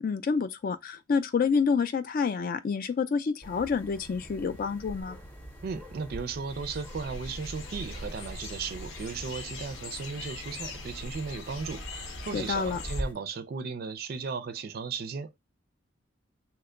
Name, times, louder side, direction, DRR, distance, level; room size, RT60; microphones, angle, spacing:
voice 1, 0.0-5.2 12.3-12.8, left 5 dB, 45° left, 0.3 m, -28 dB
sound 1, 3.4-13.1, equal, 10° left, 0.6 m, -43 dB
voice 2, 5.6-15.4, right 5 dB, 50° right, 0.4 m, -36 dB
sound 2, 6.5-13.0, left 3 dB, 80° left, 0.8 m, -42 dB
2.9 x 2.2 x 3.7 m
head